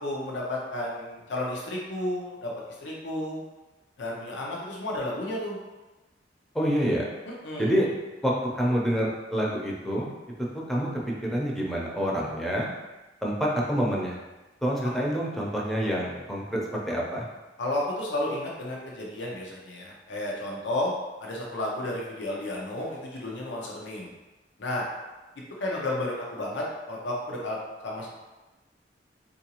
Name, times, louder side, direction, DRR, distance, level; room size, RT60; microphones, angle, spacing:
voice 1, 0.0-2.5 2.8-3.4 4.0-5.6 7.4-7.7 17.6-20.9 21.2-24.1 24.6-24.9 25.6-27.6 27.8-28.1, left 1 dB, 85° left, -3 dB, 0.6 m, -32 dB
voice 2, 6.5-7.1 7.6-7.9 8.2-10.1 10.7-10.9 11.3-12.7 13.2-14.2 14.6-17.3, equal, ahead, -4 dB, 0.5 m, -27 dB
3.8 x 2.5 x 2.9 m, 1.1 s
head